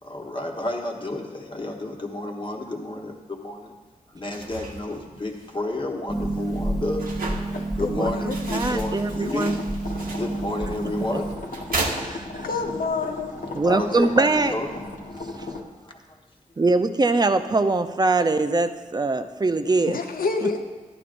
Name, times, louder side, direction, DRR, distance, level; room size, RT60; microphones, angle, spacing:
voice 1, 0.0-3.7 4.1-7.1 7.7-9.6 10.1-11.3 12.3-12.4 13.6-14.7 15.1-16.0, left 2 dB, 35° left, 1 dB, 1.3 m, -31 dB
sound 1, 4.2-12.7, right 3 dB, 90° right, 1.1 m, -36 dB
Harp, 6.1-11.4, right 2 dB, ahead, 0.9 m, -29 dB
sound 2, 7.3-15.6, left 2 dB, 65° left, 1.3 m, -37 dB
voice 2, 7.8-8.8 12.4-13.3 19.9-20.6, left 4 dB, 85° left, 4 dB, 0.9 m, -28 dB
voice 3, 8.5-9.6 12.0-12.5 13.5-14.5 15.4-15.5 16.6-20.0 20.4-20.5, right 3 dB, 30° right, 9 dB, 0.5 m, -22 dB
12.0 x 11.0 x 2.6 m, 1.3 s
wide cardioid pair, 80°, 14 cm